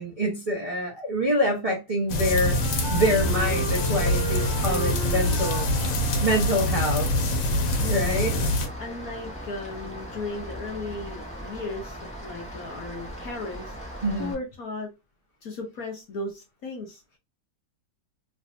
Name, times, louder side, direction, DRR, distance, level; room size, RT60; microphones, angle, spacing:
voice 1, 0.0-2.6 2.9-5.7 6.2-7.1 7.9-8.3 14.0-14.3, equal, 25° right, 0.9 m, -26 dB
sound 1, 2.1-8.7, left 1 dB, 75° left, 1.5 m, -25 dB
Wind instrument woodwind instrument, 2.1-7.1, right 6 dB, 85° right, 1.4 m, -36 dB
Rain, 3.2-14.3, equal, 5° left, 1.1 m, -39 dB
voice 2, 8.8-14.9 15.4-17.2, left 2 dB, 60° left, 1.1 m, -36 dB
3.3 x 3.3 x 2.6 m
omnidirectional pair, 2.0 m